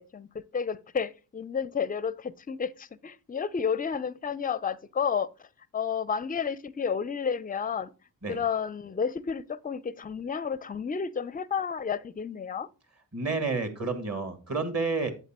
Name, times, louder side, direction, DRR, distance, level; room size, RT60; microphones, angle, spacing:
voice 1, 0.0-5.3 5.7-7.9 8.3-12.7, left 6 dB, 20° left, 0.5 m, -31 dB
voice 2, 13.1-15.1, right 4 dB, 35° right, 2.1 m, -30 dB
8.0 x 7.4 x 2.9 m
supercardioid pair, 40°, 43 cm